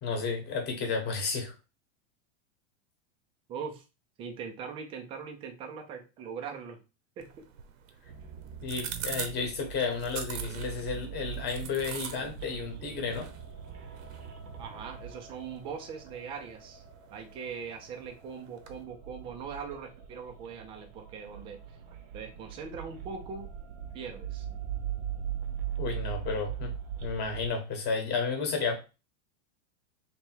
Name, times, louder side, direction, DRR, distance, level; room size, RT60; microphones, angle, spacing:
voice 1, 0.0-1.5 8.6-13.3 25.8-26.7 27.0-28.8, left 5 dB, 25° left, 1.1 m, -32 dB
voice 2, 3.5-3.8 4.2-6.8 7.2-7.3 14.6-16.8 17.1-21.8 22.1-23.5 23.9-24.5, right 6 dB, 15° right, 0.4 m, -41 dB
sound 1, 7.2-18.8, right 8 dB, 75° right, 0.9 m, -45 dB
sound 2, 8.0-27.5, right 9 dB, 35° right, 0.7 m, -41 dB
3.4 x 2.9 x 4.3 m
supercardioid pair, 150°, 40 cm